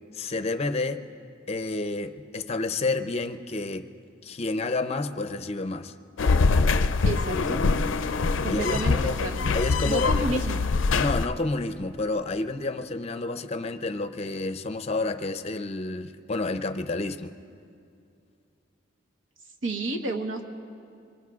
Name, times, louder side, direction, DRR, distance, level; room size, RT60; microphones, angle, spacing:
voice 1, 0.1-1.0 1.5-3.9 4.2-5.9 8.5-9.2 9.5-10.4 11.0-17.3, left 3 dB, 35° left, 10 dB, 0.5 m, -29 dB
sound 1, 6.2-11.3, left 4 dB, 85° left, 0.5 m, -24 dB
voice 2, 7.0-7.6 8.4-9.5 9.8-10.6 19.6-20.4, right 2 dB, 90° right, 3 dB, 1.3 m, -31 dB
25.5 x 23.5 x 2.4 m, 2.5 s
head